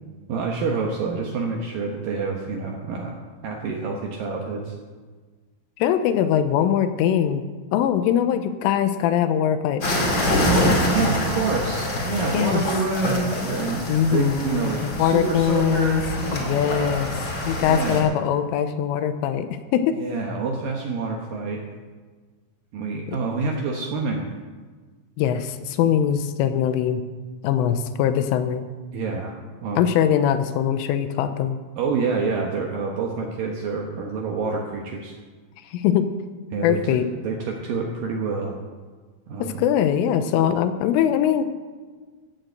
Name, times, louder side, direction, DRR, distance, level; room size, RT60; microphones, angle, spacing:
voice 1, 0.3-3.1 3.4-4.7 10.4-16.6 17.7-18.1 20.0-21.6 22.7-24.2 28.9-29.8 31.8-35.2 36.5-37.0 37.2-38.6 39.3-39.6, right 4 dB, 80° right, 1 dB, 2.0 m, -27 dB
voice 2, 5.8-7.5 7.7-9.9 12.3-12.6 13.9-16.0 16.3-17.2 17.5-20.0 25.2-27.0 27.4-28.6 29.8-31.6 35.7-36.1 36.6-37.1 39.4-41.4, left 9 dB, 90° left, 10 dB, 3.3 m, -22 dB
sound 1, 9.8-18.0, left 1 dB, 35° left, 2.0 m, -26 dB
16.0 x 6.8 x 7.9 m, 1.4 s
omnidirectional pair, 5.7 m